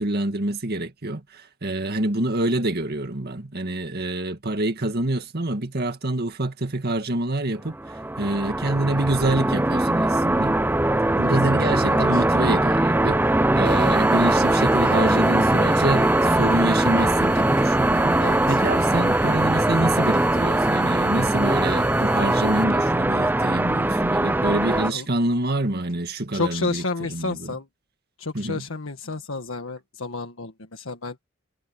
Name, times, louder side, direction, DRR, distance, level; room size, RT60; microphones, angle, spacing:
voice 1, 0.0-10.6 11.2-13.2 13.5-18.1 18.5-26.8 27.1-27.6 28.3-28.7, right 1 dB, 50° right, 2.0 m, -26 dB
sound 1, 7.7-24.9, right 1 dB, 10° right, 0.6 m, -21 dB
voice 2, 11.9-12.2 18.2-18.6 24.8-25.1 26.3-27.7 28.2-31.2, left 3 dB, 80° left, 1.6 m, -31 dB
sound 2, 13.6-22.6, left 9 dB, 40° left, 3.2 m, -42 dB
head